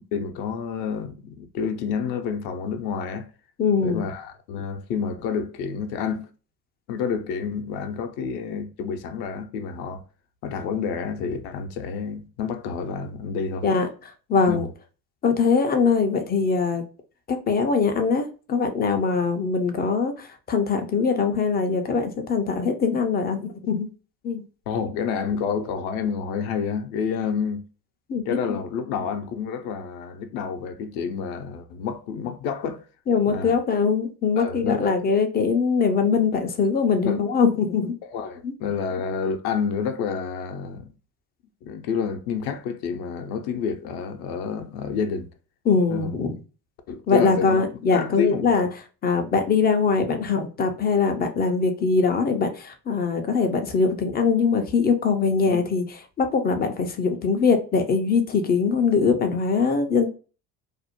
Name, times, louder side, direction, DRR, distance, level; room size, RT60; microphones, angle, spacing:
voice 1, 0.1-3.3 3.8-6.3 6.9-10.0 10.4-13.7 14.5-14.7 24.7-27.7 28.1-32.8 33.3-33.6 34.4-34.9 37.0-37.2 38.0-40.9 41.6-45.3 45.9-46.2 46.9-47.6 47.9-48.7 49.1-49.2 55.5-55.6, left 6 dB, 60° left, 0.6 m, -29 dB
voice 2, 3.6-4.0 13.6-13.9 14.3-14.7 15.2-16.8 17.3-23.9 24.2-24.4 28.1-28.4 33.1-37.9 38.4-38.5 45.7-46.3 47.1-48.7 49.0-55.8 56.2-60.1, left 5 dB, 20° left, 0.3 m, -22 dB
2.5 x 2.0 x 2.8 m
hypercardioid pair, 75°, 49 cm